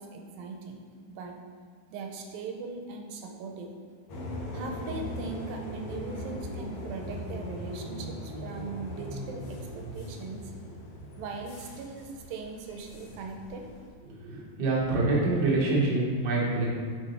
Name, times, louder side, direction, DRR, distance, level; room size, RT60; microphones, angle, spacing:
voice 1, 0.0-1.4 1.9-3.7 4.5-10.5 11.2-13.7, right 3 dB, 85° right, 3 dB, 2.4 m, -40 dB
sound 1, 4.1-13.9, equal, 65° left, 1.5 m, -39 dB
voice 2, 14.2-16.7, right 2 dB, 50° right, -5 dB, 1.3 m, -26 dB
8.5 x 5.7 x 3.4 m, 2.1 s
omnidirectional pair, 4.2 m